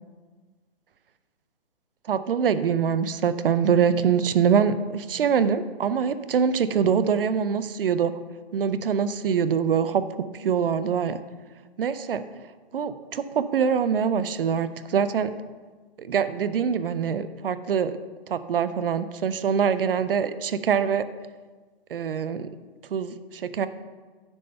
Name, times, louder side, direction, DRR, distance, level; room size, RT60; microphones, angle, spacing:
voice 1, 2.1-8.1 8.5-11.2 11.8-12.2 12.7-15.3 16.0-18.0 18.3-21.0 21.9-22.5 22.9-23.7, right 7 dB, 60° right, 13 dB, 0.6 m, -24 dB
9.7 x 3.3 x 6.7 m, 1.4 s
hypercardioid pair, 165°, 31 cm